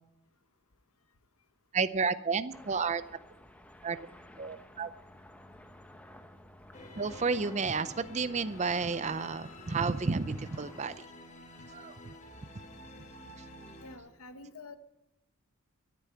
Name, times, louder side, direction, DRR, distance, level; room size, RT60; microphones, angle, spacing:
voice 1, 1.7-3.0 3.8-4.0 4.4-4.9 6.9-10.9 11.7-12.1, right 4 dB, 30° right, 13 dB, 0.5 m, -31 dB
sound 1, 2.5-11.0, left 1 dB, 5° left, 0.8 m, -54 dB
sound 2, 6.7-14.0, left 1 dB, 30° left, 1.5 m, -50 dB
voice 2, 13.8-14.8, left 3 dB, 70° left, 10 dB, 1.0 m, -48 dB
13.5 x 9.2 x 8.7 m, 0.88 s
head